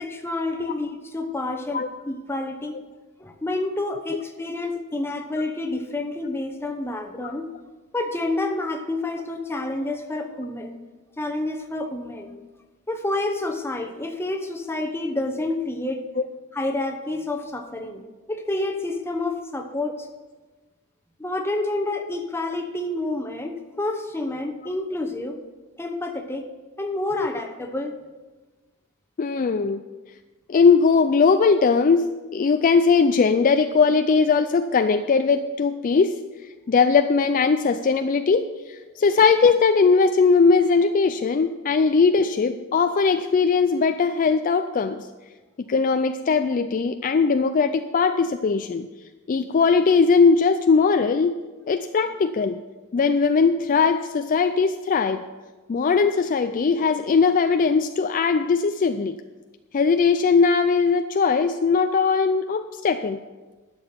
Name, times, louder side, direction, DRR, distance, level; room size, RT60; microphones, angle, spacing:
voice 1, 0.0-2.8 3.2-7.5 7.9-10.7 11.2-12.3 12.9-16.0 16.5-18.0 18.3-20.1 21.2-25.4 25.8-26.5 26.8-28.0, left 2 dB, 10° left, 4 dB, 0.9 m, -29 dB
voice 2, 29.2-29.8 30.5-32.0 32.3-36.1 36.7-45.0 45.7-48.9 49.3-51.4 51.7-52.6 52.9-55.2 55.7-59.2 59.7-63.2, left 5 dB, 40° left, 9 dB, 0.4 m, -20 dB
11.5 x 7.0 x 5.8 m, 1.2 s
head